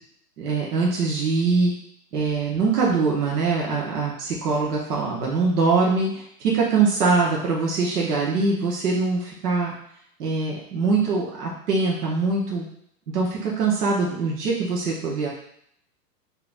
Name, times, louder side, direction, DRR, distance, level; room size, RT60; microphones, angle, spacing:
voice 1, 0.4-1.7 2.1-9.7 10.2-12.7 13.1-15.3, right 4 dB, 70° right, -3 dB, 1.0 m, -23 dB
3.5 x 2.9 x 2.5 m, 0.69 s
hypercardioid pair, 180°, 49 cm